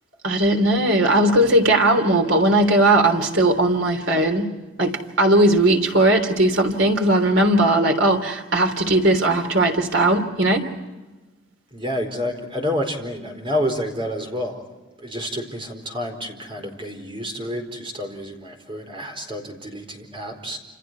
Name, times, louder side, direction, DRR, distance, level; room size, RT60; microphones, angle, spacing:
voice 1, 0.2-10.6, right 1 dB, 75° right, 3.4 m, -18 dB
voice 2, 11.7-14.6 15.0-20.6, equal, 25° right, 4.5 m, -29 dB
29.0 x 28.5 x 4.7 m
head